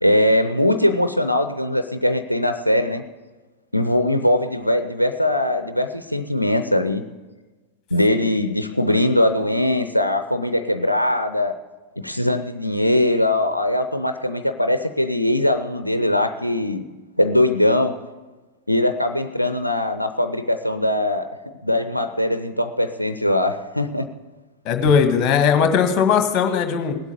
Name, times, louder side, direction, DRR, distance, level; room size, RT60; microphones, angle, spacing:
voice 1, 0.0-3.0 3.7-7.0 7.9-11.5 12.0-16.8 17.2-18.0 18.7-21.3 21.6-24.1, left 1 dB, 85° left, 8 dB, 0.5 m, -21 dB
voice 2, 24.6-27.0, left 7 dB, 35° left, 7 dB, 1.7 m, -18 dB
18.0 x 8.2 x 6.8 m, 1.2 s
figure-of-eight pair, 90°, 0 cm